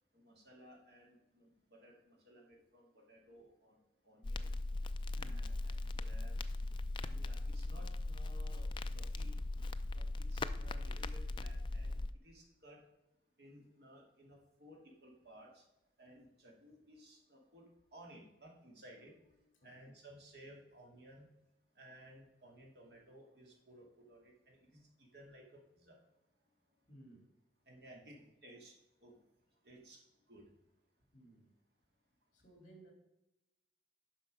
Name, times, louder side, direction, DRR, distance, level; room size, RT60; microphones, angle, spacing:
voice 1, 0.1-3.8 4.0-4.5 5.2-6.4 7.0-9.3 9.9-12.0 12.2-12.8 13.4-15.6 16.0-21.3 21.8-26.0 27.7-29.2 29.6-30.0 30.3-30.4, right 1 dB, 65° right, 2.2 m, -58 dB
Crackle, 4.2-12.1, left 2 dB, 25° left, 0.3 m, -39 dB
voice 2, 19.6-19.9 26.9-27.3 28.0-28.3 31.1-31.5 32.3-32.9, right 1 dB, 45° left, 3.0 m, -59 dB
9.6 x 5.8 x 5.2 m
head